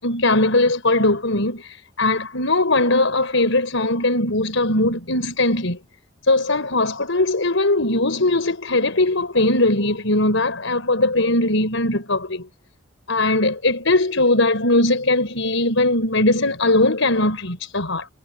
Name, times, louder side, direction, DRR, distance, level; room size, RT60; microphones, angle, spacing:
voice 1, 0.0-5.8 6.2-12.5 13.1-18.1, left 2 dB, 85° left, 4.9 m, -20 dB
head